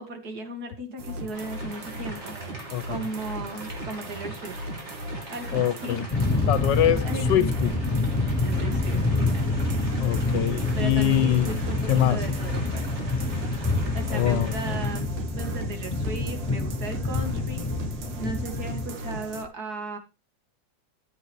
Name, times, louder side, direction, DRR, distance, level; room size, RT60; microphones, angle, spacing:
voice 1, 0.0-4.6 5.3-6.0 7.0-7.3 8.4-9.4 10.8-12.9 13.9-17.7 18.1-20.0, right 2 dB, 60° right, 2.5 m, -36 dB
sound 1, 1.0-19.4, right 1 dB, 85° right, 2.0 m, -37 dB
sound 2, 1.3-15.0, right 1 dB, 40° right, 3.9 m, -43 dB
voice 2, 2.7-3.1 5.5-6.0 6.5-7.8 10.0-11.5 11.9-12.2 14.1-14.8, left 12 dB, 80° left, 1.5 m, -24 dB
sound 3, 6.1-18.9, left 3 dB, 25° left, 2.1 m, -27 dB
13.5 x 8.0 x 3.1 m
omnidirectional pair, 1.9 m